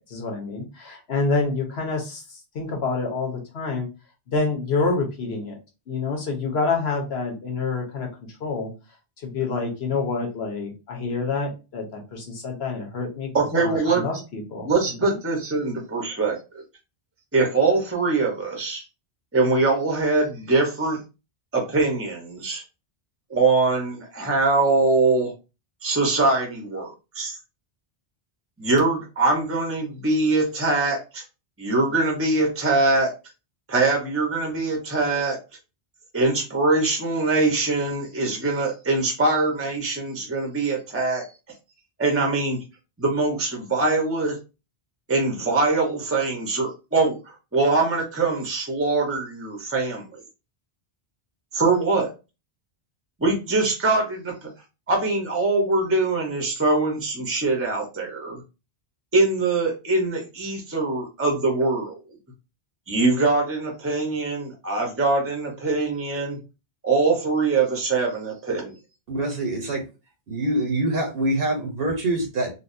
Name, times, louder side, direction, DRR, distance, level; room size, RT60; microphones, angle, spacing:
voice 1, 0.1-3.9 4.3-5.5 5.9-8.1 8.4-8.7 9.2-15.1, left 4 dB, 90° left, 1 dB, 1.2 m, -27 dB
voice 2, 13.3-14.0 14.6-16.4 17.3-18.8 19.3-21.0 21.5-22.6 23.3-25.3 25.8-27.4 28.6-31.2 31.6-33.1 33.7-35.4 36.1-41.2 42.0-42.6 43.0-44.4 45.1-47.2 47.5-50.2 51.5-52.1 53.2-54.5 54.9-58.4 59.1-62.0 62.9-66.4 66.8-68.7, right 3 dB, 15° right, 1 dB, 0.7 m, -23 dB
voice 3, 69.1-69.8 70.3-72.5, right 1 dB, 70° right, 2 dB, 1.0 m, -25 dB
4.0 x 2.3 x 2.6 m, 0.29 s
omnidirectional pair, 1.0 m